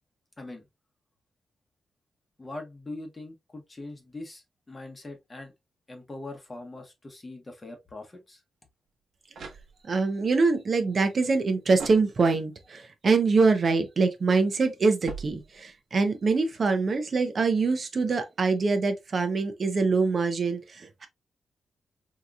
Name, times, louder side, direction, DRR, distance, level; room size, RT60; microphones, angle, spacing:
voice 1, 2.4-5.5 5.9-8.4, left 2 dB, 25° left, 0.9 m, -42 dB
sound 1, 8.9-10.2 11.7-12.6 15.0-16.0, right 5 dB, 75° right, 1.0 m, -43 dB
voice 2, 9.8-21.1, right 4 dB, 45° right, 0.6 m, -24 dB
3.7 x 2.8 x 2.3 m
wide cardioid pair, 125°, 0 cm